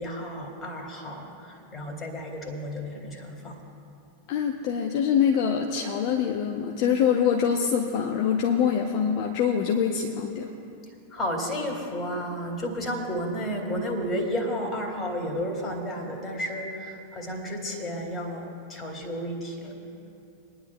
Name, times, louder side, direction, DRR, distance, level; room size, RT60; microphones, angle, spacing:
voice 1, 0.0-3.6 11.1-19.9, equal, 20° left, 1 dB, 2.2 m, -32 dB
voice 2, 4.3-10.5, left 7 dB, 45° left, 1 dB, 0.7 m, -24 dB
28.0 x 10.0 x 2.2 m, 2.7 s
figure-of-eight pair, 90°, 0 cm